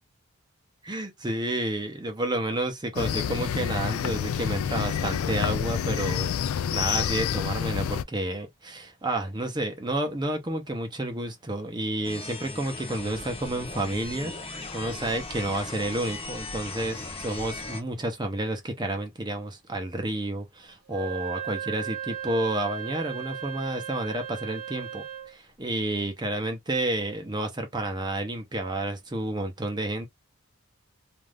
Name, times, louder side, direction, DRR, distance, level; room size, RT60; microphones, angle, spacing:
voice 1, 0.8-30.1, right 1 dB, 20° right, 0.7 m, -30 dB
sound 1, 3.0-8.0, left 8 dB, 85° left, 0.3 m, -28 dB
sound 2, 12.0-17.8, left 3 dB, 25° left, 0.7 m, -38 dB
Wind instrument woodwind instrument, 20.9-25.4, right 10 dB, 75° right, 0.9 m, -36 dB
2.5 x 2.3 x 3.3 m
head